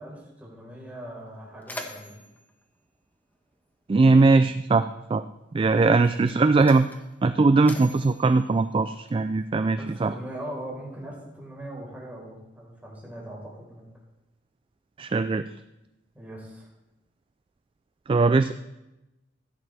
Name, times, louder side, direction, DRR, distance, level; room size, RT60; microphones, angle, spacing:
voice 1, 0.0-2.2 5.8-5.9 9.7-13.9 16.1-16.7, right 1 dB, 10° right, -4 dB, 4.5 m, -40 dB
Mechanisms, 0.7-0.8 1.2-3.9 4.9-5.1 5.9-9.5, left 1 dB, 10° left, 1.3 m, -45 dB
voice 2, 3.9-5.2 5.5-6.9 7.2-10.1 15.0-15.5 18.1-18.5, right 3 dB, 30° right, 11 dB, 0.3 m, -20 dB
15.0 x 12.5 x 3.5 m, 0.98 s
head